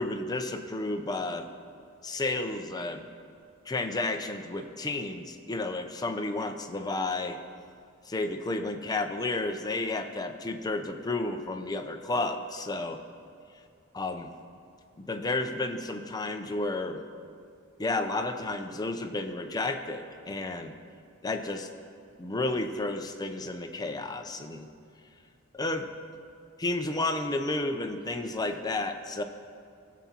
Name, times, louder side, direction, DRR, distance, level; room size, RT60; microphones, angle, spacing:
voice 1, 0.0-1.5 2.0-3.1 3.7-7.4 8.1-13.0 13.9-14.3 15.0-17.0 17.8-20.7 21.2-21.7 22.2-24.7 25.5-25.9 26.6-29.2, left 2 dB, 20° left, 6 dB, 0.5 m, -32 dB
18.5 x 7.2 x 2.9 m, 2.4 s
head